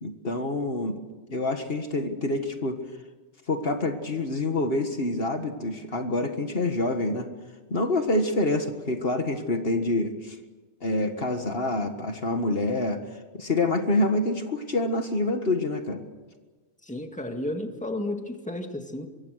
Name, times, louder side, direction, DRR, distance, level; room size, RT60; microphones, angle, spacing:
voice 1, 0.0-1.0 1.3-2.8 3.5-7.3 7.7-10.4 10.8-13.0 13.3-16.0, left 2 dB, 60° left, 6 dB, 1.9 m, -27 dB
voice 2, 16.8-19.1, left 1 dB, 5° left, 4 dB, 2.0 m, -32 dB
24.0 x 23.5 x 6.5 m, 1.3 s
omnidirectional pair, 1.1 m